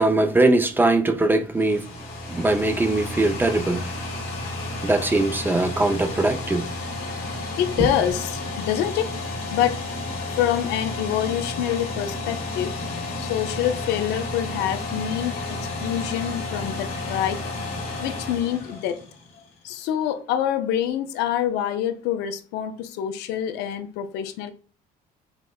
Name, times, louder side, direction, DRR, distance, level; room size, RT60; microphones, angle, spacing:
voice 1, 0.0-1.8 2.3-4.0 4.8-6.6 7.8-7.9, right 2 dB, 10° right, 0.4 m, -21 dB
sound 1, 1.3-19.4, left 2 dB, 60° left, 1.4 m, -32 dB
voice 2, 7.6-9.1 9.5-9.8 10.4-12.7 13.2-17.4 18.0-19.0 19.6-24.5, left 10 dB, 90° left, 0.4 m, -26 dB
5.0 x 2.0 x 2.3 m
cardioid pair, 110°, 17 cm